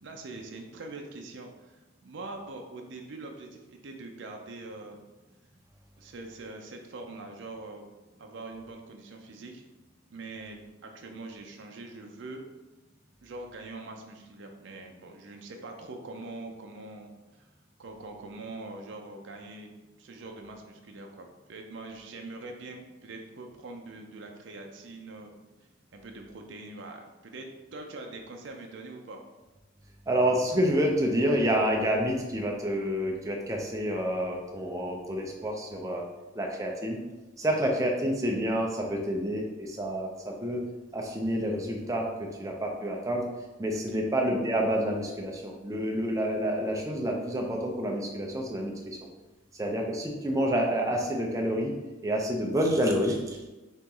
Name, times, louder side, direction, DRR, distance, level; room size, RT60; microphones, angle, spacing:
voice 1, 0.0-5.0 6.0-7.8 8.2-9.6 10.1-12.4 13.2-17.5 17.8-19.7 20.0-25.3 25.9-29.2 43.9-44.0, right 2 dB, 60° right, 2 dB, 0.5 m, -43 dB
voice 2, 30.1-36.0 36.3-37.0 37.4-40.6 40.9-42.1 42.4-43.2 43.6-49.0 49.5-51.7 52.0-53.5, equal, 15° right, 0 dB, 0.5 m, -28 dB
4.1 x 2.9 x 3.7 m, 1.1 s
head